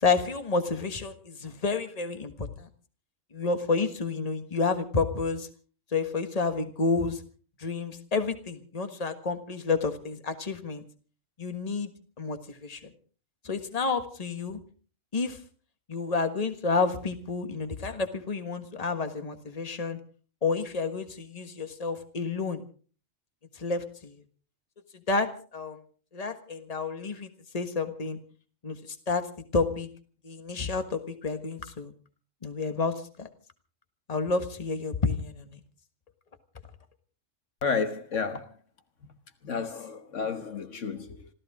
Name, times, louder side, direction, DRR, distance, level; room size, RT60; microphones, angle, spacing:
voice 1, 0.0-2.7 3.3-5.5 5.9-7.2 7.6-10.8 11.4-11.9 12.2-12.9 13.4-14.6 15.1-15.4 15.9-20.0 20.4-22.6 23.5-24.2 25.1-25.8 26.1-28.2 28.6-29.9 30.2-31.9 32.4-33.3 34.1-35.6, left 4 dB, 30° left, 1.6 m, -30 dB
voice 2, 37.6-38.5 39.4-41.3, left 5 dB, 70° left, 1.6 m, -31 dB
27.0 x 14.5 x 3.7 m
omnidirectional pair, 1.3 m